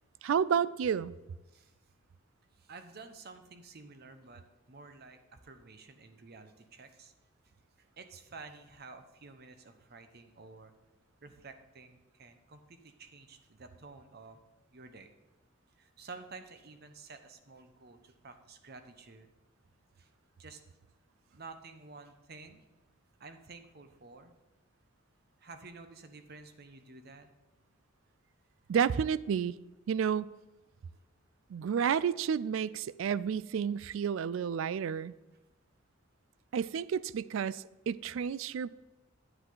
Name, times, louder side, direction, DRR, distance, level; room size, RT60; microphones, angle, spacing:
voice 1, 0.2-1.1 28.7-29.5 29.9-30.3 31.5-35.1 36.5-38.7, right 7 dB, 70° right, 18 dB, 0.3 m, -31 dB
voice 2, 2.5-7.1 7.8-10.7 11.2-14.4 14.7-15.1 15.8-19.3 20.0-20.1 20.4-20.6 21.3-22.6 23.2-24.3 25.4-27.3 30.9-31.0, right 4 dB, 50° right, 8 dB, 0.9 m, -51 dB
10.0 x 7.9 x 3.9 m, 1.1 s
head